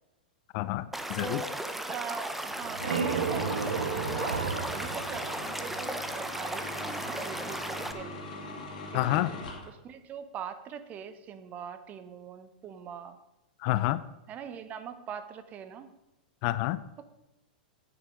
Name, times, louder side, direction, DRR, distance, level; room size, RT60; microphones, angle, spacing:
voice 1, 0.5-1.4 8.9-9.3 13.6-14.0 16.4-16.8, left 16 dB, 50° left, 16 dB, 0.5 m, -28 dB
Stream / Liquid, 0.9-7.9, right 1 dB, 5° right, 0.8 m, -36 dB
voice 2, 1.2-4.3 4.6-8.2 8.9-9.3 9.6-13.2 14.3-15.9 17.0-17.1, right 7 dB, 30° right, 11 dB, 1.0 m, -42 dB
sound 1, 2.4-6.1, right 5 dB, 80° right, 1.1 m, -33 dB
sound 2, 2.8-9.7, left 2 dB, 65° left, 2.5 m, -41 dB
9.6 x 8.8 x 5.1 m, 0.92 s
hypercardioid pair, 105°, 5 cm